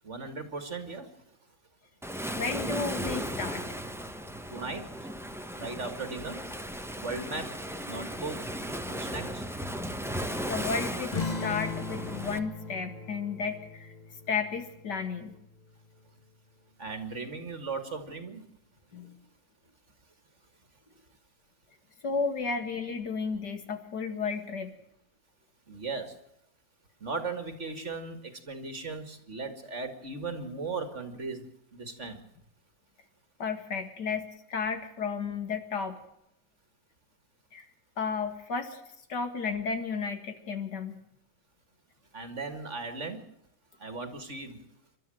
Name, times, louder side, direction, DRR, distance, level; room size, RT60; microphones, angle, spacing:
voice 1, 0.0-1.2 4.5-5.1 5.6-6.5 7.0-8.4 8.9-9.4 16.8-18.5 25.7-26.2 27.0-32.2 42.1-43.2 43.8-44.7, right 3 dB, 40° right, 8 dB, 2.3 m, -37 dB
Waves surf, 2.0-12.4, equal, ahead, 1.0 m, -36 dB
voice 2, 2.4-3.8 10.5-13.9 14.3-15.4 18.9-19.2 22.0-24.7 33.4-36.0 37.5-37.6 38.0-38.8 39.1-41.0, left 5 dB, 70° left, 7 dB, 2.6 m, -33 dB
sound 1, 11.1-16.1, left 4 dB, 25° left, 1.5 m, -39 dB
28.5 x 13.0 x 7.7 m, 0.82 s
omnidirectional pair, 1.9 m